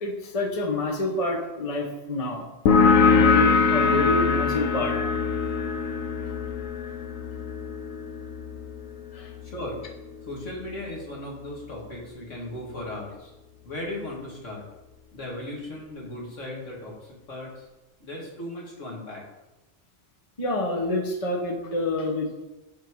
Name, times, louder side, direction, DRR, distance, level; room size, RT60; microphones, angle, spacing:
voice 1, 0.0-2.4 3.1-5.0 9.1-9.3 20.4-22.3, left 2 dB, 30° left, 1 dB, 1.2 m, -27 dB
sound 1, 2.7-9.9, left 5 dB, 85° left, 1.2 m, -23 dB
voice 2, 10.2-13.3 13.6-14.6 15.1-17.5 18.0-19.2, left 1 dB, 70° left, -3 dB, 2.4 m, -36 dB
11.5 x 4.5 x 4.7 m, 1.1 s
omnidirectional pair, 1.3 m